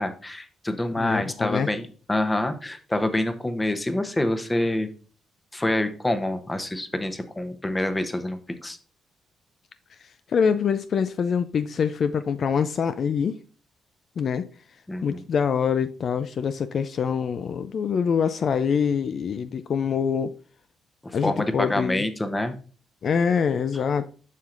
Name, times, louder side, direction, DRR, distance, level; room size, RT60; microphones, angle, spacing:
voice 1, 0.0-4.9 5.5-8.8 14.9-15.2 21.0-22.5, left 1 dB, 15° left, 0.8 m, -27 dB
voice 2, 1.0-1.7 10.0-13.4 14.2-14.5 15.0-20.3 21.1-22.0 23.0-24.1, left 6 dB, 55° left, 0.3 m, -25 dB
7.4 x 5.5 x 2.5 m
cardioid pair, 90°, 0 cm